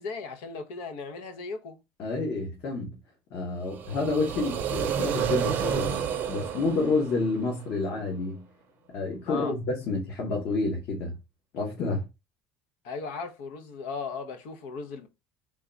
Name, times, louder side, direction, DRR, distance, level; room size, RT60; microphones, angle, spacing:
voice 1, 0.0-1.8 9.3-9.5 12.8-15.1, left 4 dB, 90° left, 0.7 m, -36 dB
voice 2, 2.0-3.0 3.3-8.4 8.9-11.1 11.5-12.1, left 3 dB, 50° left, 1.0 m, -29 dB
sound 1, 3.7-7.7, right 8 dB, 40° right, 0.5 m, -30 dB
3.6 x 2.3 x 3.8 m
cardioid pair, 160°, 5 cm